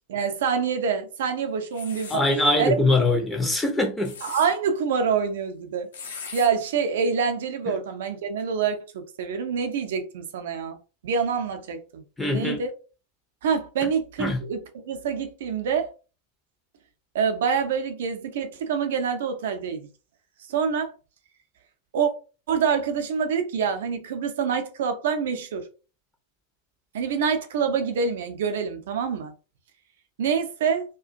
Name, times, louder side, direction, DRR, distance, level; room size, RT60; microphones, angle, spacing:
voice 1, 0.1-2.3 2.6-2.7 4.2-5.9 6.3-10.8 11.0-12.0 12.3-12.7 13.4-15.9 17.1-19.9 20.5-20.9 21.9-22.1 22.5-25.7 26.9-29.3 30.2-30.8, right 6 dB, 60° right, 0.5 m, -26 dB
sound 1, 1.7-2.2 3.8-4.5 5.9-6.5, left 6 dB, 65° left, 0.5 m, -38 dB
voice 2, 2.1-4.1 7.7-7.8 12.2-12.6 13.8-13.9 14.2-14.4, left 2 dB, 10° left, 0.5 m, -23 dB
2.4 x 2.1 x 2.5 m
figure-of-eight pair, 90°, 0 cm